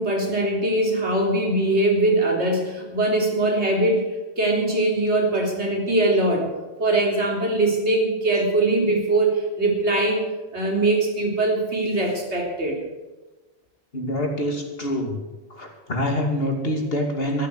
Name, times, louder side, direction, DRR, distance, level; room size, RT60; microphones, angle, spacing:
voice 1, 0.0-6.5 6.8-10.2 10.5-12.8, right 2 dB, 85° right, 0 dB, 4.0 m, -22 dB
voice 2, 13.9-15.2 15.5-17.5, equal, 60° left, 2 dB, 2.8 m, -25 dB
13.0 x 11.5 x 8.1 m, 1.2 s
omnidirectional pair, 1.1 m